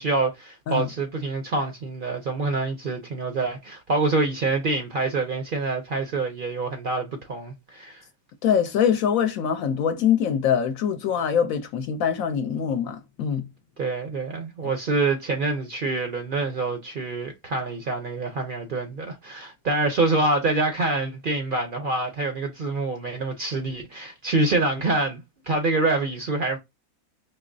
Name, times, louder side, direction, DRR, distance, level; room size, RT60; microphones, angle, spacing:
voice 1, 0.0-8.0 13.8-26.6, right 3 dB, 55° right, 0.6 m, -26 dB
voice 2, 8.4-13.4, left 8 dB, 75° left, 0.9 m, -23 dB
4.0 x 3.0 x 2.6 m
omnidirectional pair, 1.5 m